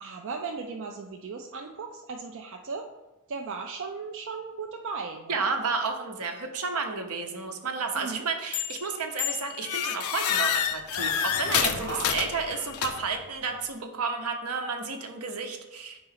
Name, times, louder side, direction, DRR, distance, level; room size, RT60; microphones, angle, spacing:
voice 1, 0.0-2.9 3.3-5.4 7.9-8.3 11.7-12.1, right 4 dB, 60° right, 2 dB, 0.4 m, -37 dB
voice 2, 5.3-16.0, right 4 dB, 80° right, 4 dB, 0.9 m, -31 dB
sound 1, 8.5-8.9 9.2-13.2, left 8 dB, 75° left, 0.5 m, -28 dB
4.8 x 3.9 x 5.6 m, 1.0 s
head